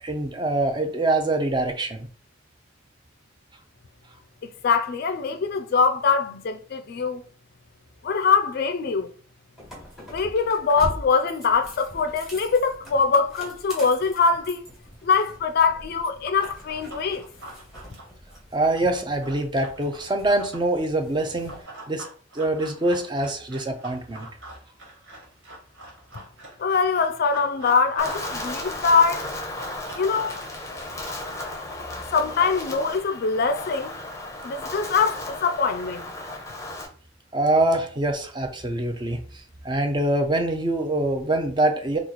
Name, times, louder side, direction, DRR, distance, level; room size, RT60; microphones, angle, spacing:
voice 1, 0.0-2.1 18.5-21.6 21.9-22.1 22.3-24.3 37.3-39.2 39.6-42.0, right 2 dB, 25° right, 0.5 m, -24 dB
voice 2, 4.6-7.2 8.0-9.1 10.1-14.6 15.0-17.3 26.6-29.2 30.0-30.4 32.1-33.9 34.4-36.1, left 5 dB, 50° left, 0.3 m, -23 dB
sound 1, 9.6-21.6, equal, ahead, 1.3 m, -42 dB
Run, 16.4-20.7 21.5-28.4 28.7-31.8, right 1 dB, 70° right, 1.6 m, -42 dB
Wind, 28.0-36.9, left 2 dB, 15° left, 0.7 m, -35 dB
3.0 x 2.4 x 3.9 m
head